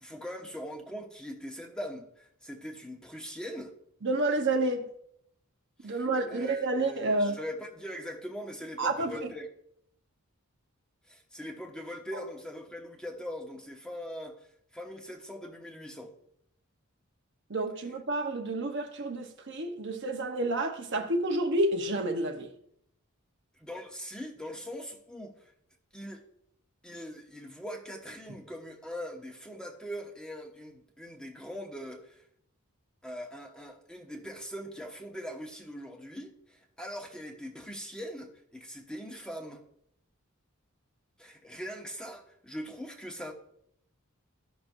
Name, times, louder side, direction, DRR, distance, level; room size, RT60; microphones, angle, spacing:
voice 1, 0.0-3.7 5.8-9.5 11.1-14.4 14.7-16.1 23.6-25.5 25.9-26.2 26.8-32.2 33.0-39.6 41.2-43.3, equal, 5° left, 0.9 m, -41 dB
voice 2, 4.0-4.9 5.8-7.4 8.8-9.1 17.5-22.5, right 2 dB, 55° right, 0.9 m, -29 dB
15.0 x 5.9 x 2.6 m
head